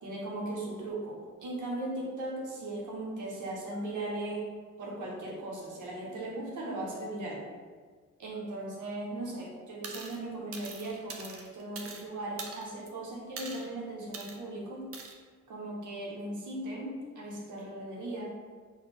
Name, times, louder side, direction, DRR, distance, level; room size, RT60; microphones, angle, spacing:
voice 1, 0.0-4.5 4.8-7.4 8.2-14.9 15.5-18.3, right 1 dB, 70° right, -4 dB, 0.9 m, -38 dB
sound 1, 9.8-10.2 10.5-12.0 12.4-12.9 13.4-13.7 14.1-14.4 14.9-15.1, right 4 dB, 45° right, 0.5 m, -43 dB
4.1 x 2.3 x 3.3 m, 1.5 s
cardioid pair, 105°, 31 cm